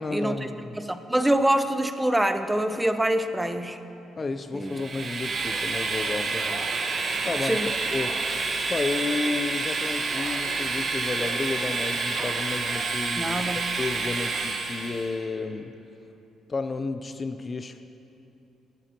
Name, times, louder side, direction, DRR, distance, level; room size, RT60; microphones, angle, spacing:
voice 1, 0.0-0.8 4.2-6.6 7.2-8.4 8.7-13.4 13.8-15.7 16.5-17.9, left 3 dB, 35° left, 10 dB, 0.5 m, -32 dB
voice 2, 0.7-3.8 4.5-4.7 7.4-7.7 13.2-13.7, right 1 dB, 10° right, 9 dB, 0.6 m, -25 dB
Train, 4.7-15.1, right 3 dB, 45° right, 1.3 m, -29 dB
19.5 x 12.5 x 2.9 m, 2.9 s
cardioid pair, 90°, 0 cm